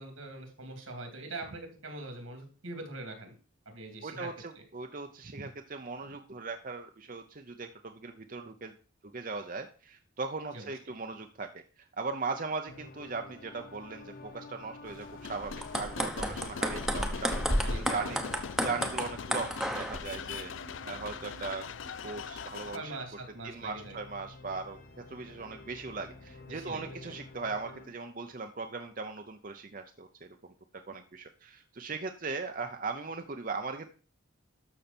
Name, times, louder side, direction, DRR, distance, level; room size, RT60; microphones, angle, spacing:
voice 1, 0.0-3.3 3.7-4.3 10.5-10.7 17.6-18.2 22.7-24.0 26.5-27.1, right 2 dB, 85° right, 4 dB, 2.9 m, -43 dB
voice 2, 4.0-8.7 9.1-11.6 12.0-17.4 17.8-21.7 22.0-23.0 23.4-24.8 25.1-30.5 30.9-33.9, right 4 dB, 40° right, 6 dB, 0.7 m, -39 dB
sound 1, 12.7-27.9, left 2 dB, 45° left, 1.2 m, -51 dB
sound 2, 14.8-22.8, left 6 dB, 65° left, 0.5 m, -41 dB
sound 3, 15.5-20.0, equal, ahead, 0.9 m, -32 dB
12.0 x 6.5 x 4.4 m, 0.38 s
head